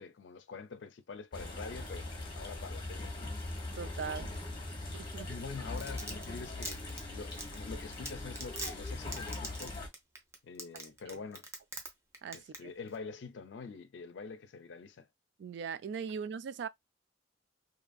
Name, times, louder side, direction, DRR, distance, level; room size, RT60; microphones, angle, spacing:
voice 1, 0.0-2.1 2.3-3.4 4.5-4.6 5.3-9.9 10.4-11.4 12.3-15.1, left 5 dB, 75° left, 0.4 m, -46 dB
sound 1, 1.3-9.9, left 2 dB, 25° left, 0.9 m, -41 dB
voice 2, 3.8-4.3 4.9-5.3 11.1-11.2 12.2-12.7 15.4-16.7, right 6 dB, 65° right, 0.3 m, -40 dB
Domestic sounds home sounds, 5.5-11.9 12.1-12.6 12.9-13.0, right 2 dB, 15° right, 0.7 m, -41 dB
2.7 x 2.5 x 2.3 m
head